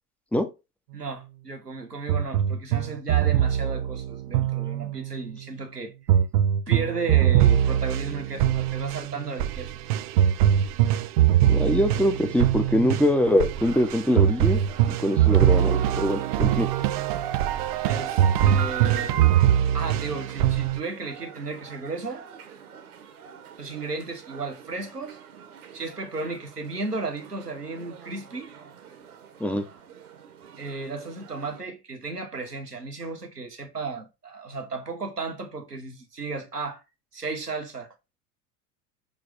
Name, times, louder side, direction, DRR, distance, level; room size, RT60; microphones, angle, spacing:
voice 1, 0.9-5.9 6.7-9.7 17.8-19.1 19.7-22.3 23.6-25.2 25.7-28.5 30.6-36.8 37.1-37.9, right 3 dB, 85° right, 1.6 m, -34 dB
sound 1, 2.1-5.2 6.1-20.8, right 10 dB, 30° right, 0.3 m, -22 dB
voice 2, 11.4-14.6 14.9-16.7 29.4-29.6, left 1 dB, 5° left, 0.9 m, -23 dB
sound 2, 13.1-31.6, right 6 dB, 65° right, 1.4 m, -45 dB
6.8 x 3.4 x 5.1 m
figure-of-eight pair, 85°, 46 cm